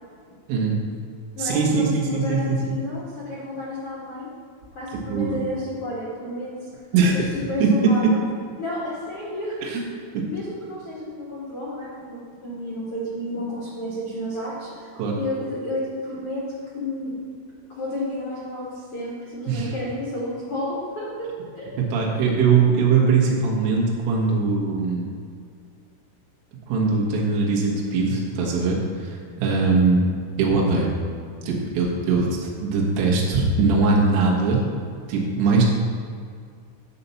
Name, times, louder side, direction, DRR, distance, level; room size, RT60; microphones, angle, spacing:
voice 1, 0.5-0.8 1.4-2.8 4.9-5.4 6.9-7.2 7.6-7.7 8.0-8.1 9.6-9.8 10.1-10.2 15.0-15.1 19.5-19.7 21.8-25.1 26.7-30.0 30.4-30.9 31.4-34.6 35.1-35.7, right 4 dB, 85° right, -3 dB, 3.8 m, -21 dB
voice 2, 1.4-4.3 4.7-6.7 7.1-7.2 7.5-8.2 8.6-9.6 10.2-14.9 15.2-16.4 16.7-17.1 17.5-21.3 21.5-21.9 29.6-29.7, left 1 dB, 50° left, -8 dB, 1.7 m, -31 dB
10.5 x 4.1 x 6.9 m, 2.2 s
omnidirectional pair, 5.5 m